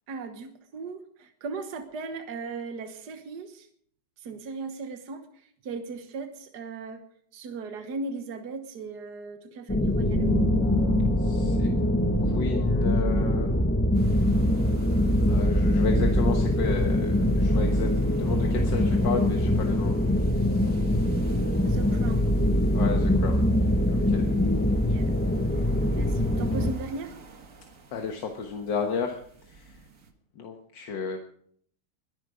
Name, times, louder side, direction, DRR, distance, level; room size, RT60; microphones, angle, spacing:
voice 1, 0.1-3.7 4.2-7.0 7.3-10.3 21.6-22.3 24.8-25.1 26.0-27.2, right 4 dB, 65° right, 7 dB, 1.8 m, -37 dB
sound 1, 9.7-26.7, left 1 dB, 20° left, 0.3 m, -23 dB
sound 2, 10.0-13.6, right 4 dB, 70° left, 4.2 m, -36 dB
voice 2, 11.2-11.7 12.2-13.5 14.5-17.9 18.2-20.0 22.7-23.4 23.9-24.3 27.9-29.2 29.5-29.7 30.4-31.2, left 5 dB, 90° left, 3 dB, 2.1 m, -33 dB
sound 3, 13.9-30.1, right 4 dB, 50° right, 1.9 m, -44 dB
22.0 x 11.0 x 5.0 m, 0.62 s
omnidirectional pair, 1.9 m